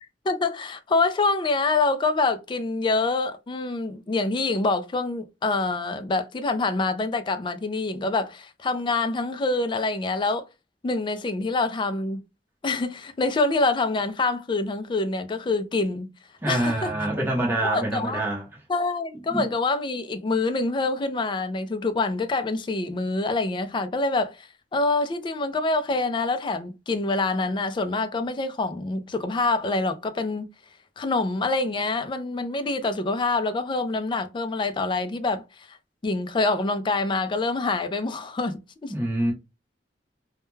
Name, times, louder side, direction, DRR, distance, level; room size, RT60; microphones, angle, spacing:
voice 1, 0.3-10.5 10.8-12.2 12.6-16.1 16.5-16.9 17.6-18.2 18.7-30.5 31.0-35.8 36.0-38.9, left 3 dB, 25° left, 0.3 m, -26 dB
voice 2, 16.4-18.4 19.3-19.5 38.9-39.3, right 1 dB, 10° right, 0.7 m, -25 dB
2.2 x 2.2 x 3.0 m
head